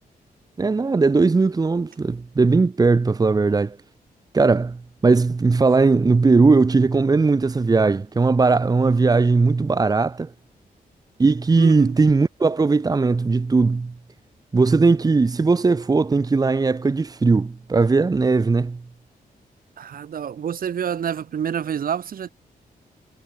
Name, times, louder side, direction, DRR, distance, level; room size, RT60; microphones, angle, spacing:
voice 1, 0.6-3.8 4.3-10.3 11.2-13.9 14.5-18.8, right 4 dB, 25° right, 1.9 m, -18 dB
voice 2, 11.6-12.0 19.8-22.3, right 8 dB, 65° right, 4.8 m, -28 dB
wide cardioid pair, 160°, 16 cm